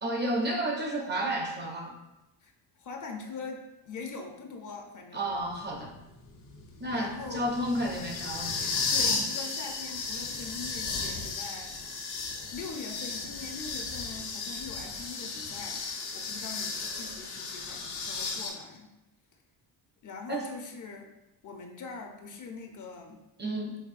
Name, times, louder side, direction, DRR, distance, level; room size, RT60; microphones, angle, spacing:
voice 1, 0.0-1.9 5.1-5.9 6.8-9.0 20.3-20.4 23.4-23.8, right 1 dB, 25° right, 0 dB, 0.5 m, -31 dB
voice 2, 2.4-5.3 6.9-7.5 8.9-11.8 12.5-15.8 16.1-18.9 20.0-21.1 21.4-23.2, left 4 dB, 45° left, 2 dB, 0.5 m, -42 dB
sound 1, 5.4-18.5, left 4 dB, 80° left, 1.1 m, -35 dB
5.5 x 3.0 x 2.4 m, 0.97 s
cardioid pair, 140°, 44 cm